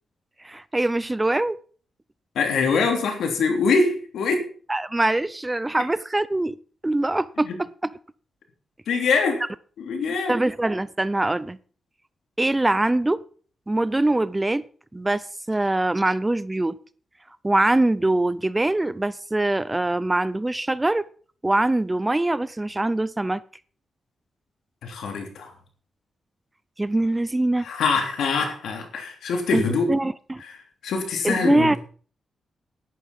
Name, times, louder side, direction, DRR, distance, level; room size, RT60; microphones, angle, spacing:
voice 1, 0.4-1.6 4.7-6.6 6.8-7.7 10.3-11.6 12.4-13.2 13.7-14.6 14.9-16.8 17.4-21.0 21.4-23.4 26.8-27.7 29.5-29.6 29.9-30.4 31.2-31.8, right 2 dB, 15° right, 18 dB, 0.6 m, -23 dB
voice 2, 2.3-4.5 7.4-7.6 8.9-9.4 9.8-10.4 24.8-25.5 27.6-29.9 30.4-31.8, left 4 dB, 85° left, 4 dB, 3.3 m, -24 dB
11.0 x 10.5 x 5.4 m, 0.43 s
cardioid pair, 90°, 0 cm